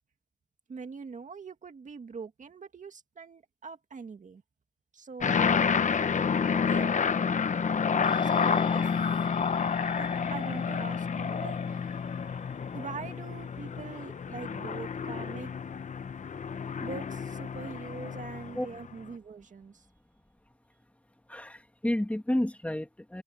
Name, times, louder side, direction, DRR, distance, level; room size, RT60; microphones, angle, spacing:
voice 1, 0.7-4.4 4.9-5.5 6.1-7.0 8.2-8.9 9.9-12.3 12.7-15.5 16.8-19.9, right 5 dB, 55° right, 2.0 m, -43 dB
sound 1, 5.2-18.9, left 6 dB, 50° left, 0.9 m, -29 dB
sound 2, 8.0-16.7 17.1-17.2, left 3 dB, 30° left, 5.9 m, -50 dB
voice 2, 21.3-23.2, left 1 dB, 10° left, 2.7 m, -31 dB
open air
cardioid pair, 90°, 16 cm